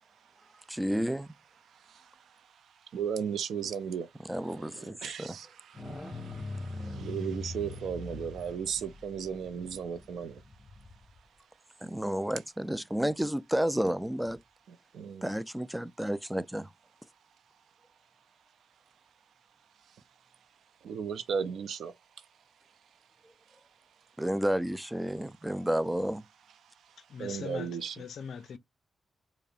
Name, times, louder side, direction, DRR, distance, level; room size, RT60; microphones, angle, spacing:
voice 1, 0.1-0.8 1.7-10.4 14.7-15.3 19.8-20.0 20.8-22.3 23.5-23.6 26.6-28.0, right 7 dB, 80° right, 0.4 m, -37 dB
voice 2, 0.7-1.3 4.3-5.4 6.9-7.0 11.8-14.4 15.2-16.7 24.2-26.3, equal, 10° right, 0.3 m, -31 dB
sound 1, 5.7-11.2 14.2-14.3, left 2 dB, 20° left, 1.4 m, -42 dB
voice 3, 27.1-28.6, left 6 dB, 75° left, 0.4 m, -41 dB
5.1 x 2.0 x 2.4 m
cardioid pair, 60°, 0 cm